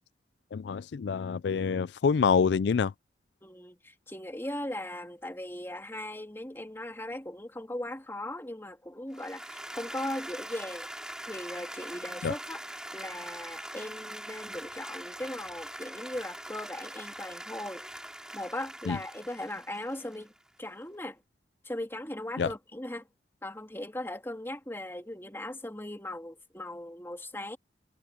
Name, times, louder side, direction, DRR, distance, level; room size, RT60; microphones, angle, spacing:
voice 1, 0.5-2.9 12.2-12.3 18.9-19.0 22.4-22.5, left 6 dB, 75° left, 0.4 m, -26 dB
voice 2, 3.4-10.9 11.3-12.6 12.9-17.8 18.3-20.3 20.6-21.2 21.6-23.1 23.4-27.6, left 1 dB, 15° left, 3.0 m, -38 dB
Applause, 9.1-20.5, right 1 dB, 5° right, 3.1 m, -43 dB
head